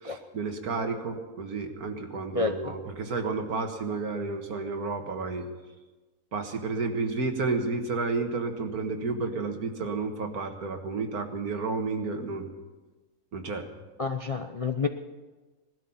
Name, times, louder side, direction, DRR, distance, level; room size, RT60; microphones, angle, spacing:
voice 1, 0.0-5.5 6.3-12.5 13.3-13.7, right 4 dB, 75° right, 5 dB, 2.0 m, -31 dB
voice 2, 14.0-14.9, left 4 dB, 40° left, 5 dB, 0.5 m, -28 dB
18.5 x 12.5 x 5.6 m, 1.2 s
omnidirectional pair, 1.6 m